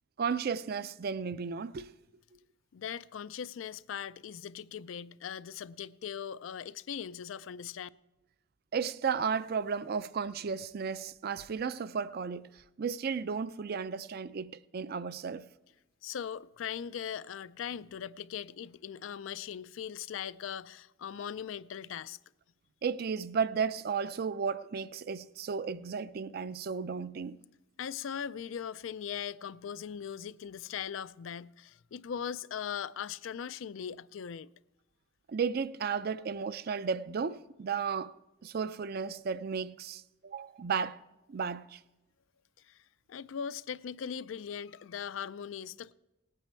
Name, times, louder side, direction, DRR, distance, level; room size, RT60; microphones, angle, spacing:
voice 1, 0.2-1.9 8.7-12.5 12.8-15.5 22.8-27.4 35.3-38.1 38.4-41.0 41.3-41.8, right 6 dB, 50° right, 0.4 m, -34 dB
voice 2, 2.7-7.9 16.0-22.2 27.8-34.5 42.7-42.8 43.1-45.9, left 8 dB, 85° left, 0.4 m, -40 dB
18.5 x 9.1 x 4.4 m
head